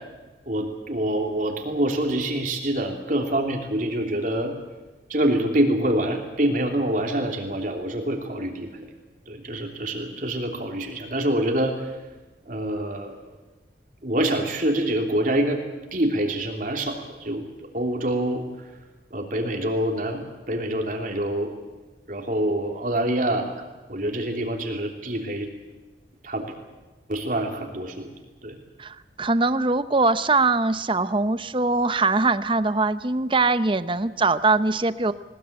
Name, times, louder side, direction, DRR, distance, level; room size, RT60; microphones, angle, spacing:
voice 1, 0.5-4.5 5.1-8.9 9.3-11.9 12.4-13.2 14.0-15.6 15.9-17.5 17.7-18.4 19.1-21.5 22.1-23.5 23.9-25.5 26.2-26.5 27.1-28.1 28.4-28.6, right 1 dB, 45° right, 3 dB, 3.1 m, -26 dB
voice 2, 28.8-35.1, right 3 dB, 25° right, 13 dB, 0.7 m, -22 dB
20.5 x 20.5 x 8.7 m, 1.2 s
head